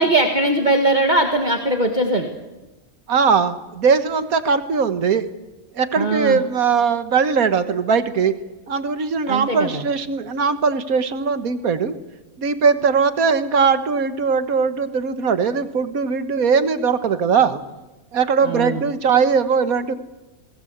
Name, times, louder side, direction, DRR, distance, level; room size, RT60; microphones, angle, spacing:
voice 1, 0.0-2.3 6.0-6.4 9.3-9.8 18.4-18.8, right 2 dB, 30° right, 3 dB, 2.0 m, -20 dB
voice 2, 3.1-5.3 5.8-8.3 8.7-11.9 12.4-17.6 18.1-19.9, right 5 dB, 80° right, 11 dB, 1.8 m, -20 dB
28.5 x 19.0 x 8.0 m, 1.1 s
omnidirectional pair, 1.5 m